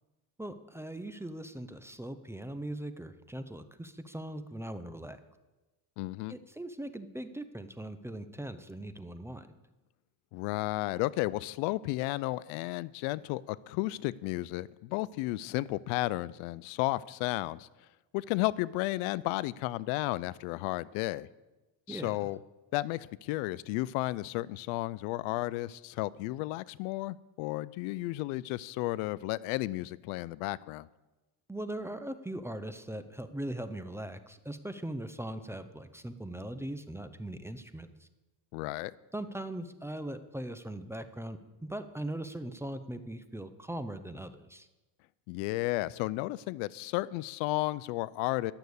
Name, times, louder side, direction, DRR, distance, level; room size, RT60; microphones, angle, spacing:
voice 1, 0.4-5.2 6.3-9.5 21.9-22.3 31.5-38.1 39.1-44.7, right 1 dB, 5° right, 10 dB, 0.5 m, -40 dB
voice 2, 6.0-6.4 10.3-17.7 18.1-21.3 21.9-22.4 22.7-30.9 38.5-38.9 45.3-48.5, left 18 dB, 85° left, 20 dB, 0.6 m, -33 dB
11.5 x 6.8 x 8.0 m, 1.1 s
cardioid pair, 115°, 47 cm